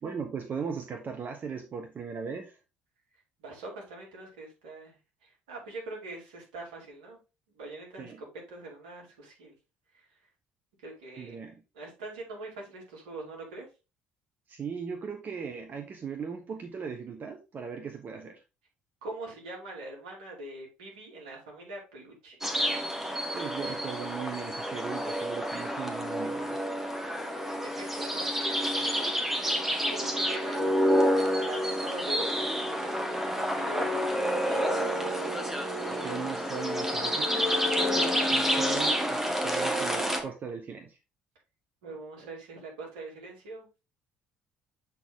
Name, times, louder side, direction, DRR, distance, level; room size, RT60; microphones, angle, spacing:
voice 1, 0.0-2.6 8.0-8.2 11.2-11.6 14.5-18.4 23.3-26.6 35.9-37.5 37.8-41.0, right 6 dB, 40° right, 4 dB, 1.0 m, -38 dB
voice 2, 3.4-5.0 5.2-7.2 7.6-8.1 8.5-9.5 9.9-10.1 10.8-11.4 11.7-13.7 19.0-22.4 27.5-34.7 41.8-43.7, right 2 dB, 75° right, -2 dB, 2.4 m, -43 dB
sound 1, 22.4-40.2, equal, 5° right, 1.4 m, -29 dB
7.4 x 4.1 x 3.6 m, 0.28 s
figure-of-eight pair, 55°, 5 cm